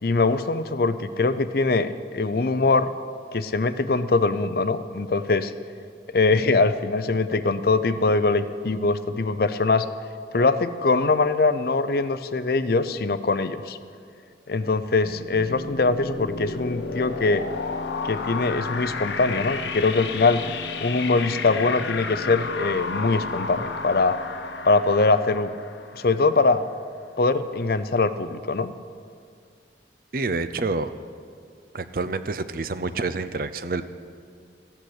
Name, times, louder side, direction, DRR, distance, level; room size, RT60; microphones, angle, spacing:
voice 1, 0.0-2.9 3.3-5.5 6.1-9.9 10.3-13.8 14.5-17.5 18.0-20.4 20.8-24.2 24.6-25.5 25.9-26.6 27.2-28.7, left 3 dB, 55° left, 12 dB, 0.6 m, -22 dB
sound 1, 15.0-26.4, left 4 dB, 75° left, 0.9 m, -32 dB
voice 2, 30.1-30.9 31.7-33.8, right 3 dB, 50° right, 12 dB, 0.6 m, -28 dB
14.5 x 9.0 x 8.0 m, 2.3 s
head